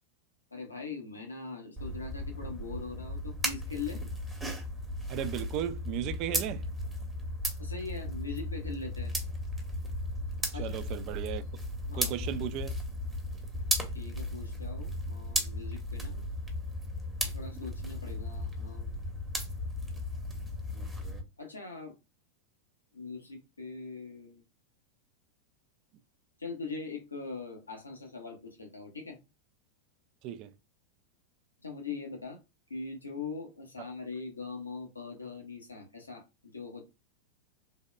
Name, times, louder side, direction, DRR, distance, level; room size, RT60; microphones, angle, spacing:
voice 1, 0.5-4.0 7.6-9.1 10.5-10.8 11.8-12.1 13.9-16.3 17.2-19.0 21.4-21.9 22.9-24.4 26.4-29.2 31.6-32.4 32.7-36.8, left 4 dB, 80° left, 0.7 m, -41 dB
sound 1, 1.8-21.2, equal, 10° right, 0.9 m, -36 dB
voice 2, 5.1-6.7 10.5-11.4 11.9-12.8 30.2-30.5, right 10 dB, 40° right, 0.3 m, -35 dB
3.4 x 2.2 x 2.2 m
figure-of-eight pair, 90°, 0 cm